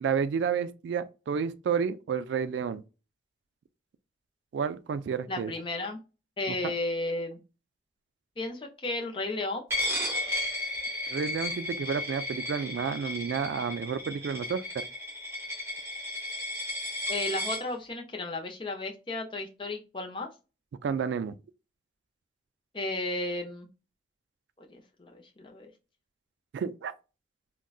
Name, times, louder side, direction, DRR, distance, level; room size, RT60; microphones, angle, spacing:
voice 1, 0.0-2.8 4.5-5.5 6.5-6.7 11.1-14.8 20.8-21.3 26.5-26.9, right 6 dB, 85° right, 0.3 m, -31 dB
voice 2, 5.3-6.0 6.4-7.4 8.4-9.6 17.1-20.3 22.7-23.7 24.6-25.7, left 2 dB, 30° left, 0.6 m, -34 dB
Coin (dropping), 9.7-17.6, left 1 dB, 15° right, 0.9 m, -34 dB
3.7 x 2.2 x 2.3 m
head